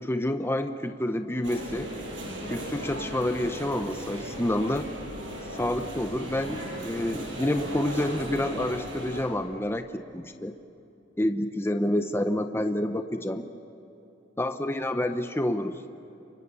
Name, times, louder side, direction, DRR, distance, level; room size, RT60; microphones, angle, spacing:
voice 1, 0.0-1.9 2.5-4.9 5.5-10.5 11.2-13.5 14.4-15.8, left 1 dB, 15° left, 7 dB, 0.8 m, -28 dB
sound 1, 1.4-9.2, right 1 dB, 90° right, 6.8 m, -37 dB
29.5 x 25.0 x 6.9 m, 2.9 s
head